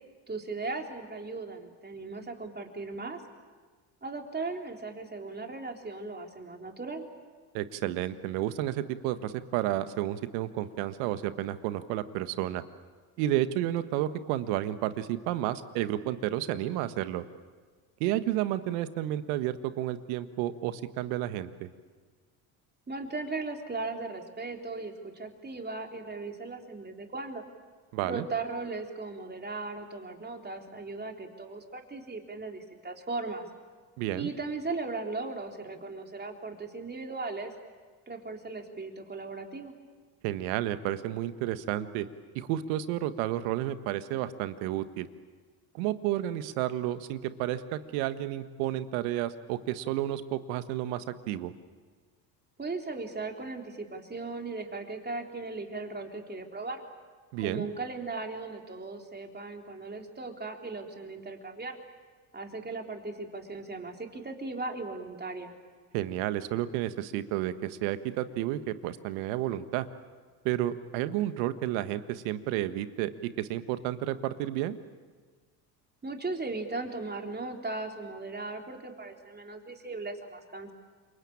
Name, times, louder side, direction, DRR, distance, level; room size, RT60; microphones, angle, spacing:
voice 1, 0.3-3.2 4.0-7.0 22.9-27.4 28.0-33.5 34.1-37.5 38.1-39.7 52.6-56.8 57.4-61.8 62.3-65.5 76.0-80.7, right 3 dB, 20° right, 3 dB, 3.8 m, -37 dB
voice 2, 7.5-12.6 13.2-17.2 18.0-21.7 27.9-28.2 34.0-34.3 40.2-42.1 42.3-45.1 45.7-51.5 57.3-57.7 65.9-69.9 70.4-74.8, right 13 dB, 75° right, 12 dB, 1.6 m, -31 dB
28.0 x 23.5 x 8.8 m, 1.5 s
hypercardioid pair, 75°, 50 cm